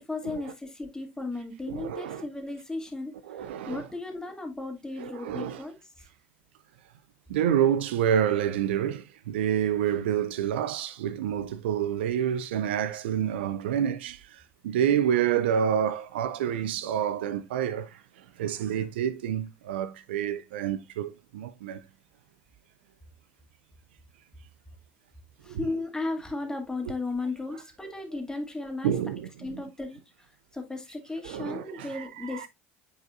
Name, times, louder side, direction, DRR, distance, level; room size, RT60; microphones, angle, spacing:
voice 1, 0.0-6.1 25.4-28.9 29.4-32.5, left 2 dB, 10° left, 2.3 m, -35 dB
voice 2, 1.7-2.2 3.3-3.8 5.0-5.6 7.3-18.0 18.4-21.8 25.5-25.6 28.8-29.6 31.2-32.5, right 9 dB, 75° right, 0.4 m, -28 dB
8.9 x 4.9 x 2.5 m
figure-of-eight pair, 60°, 6 cm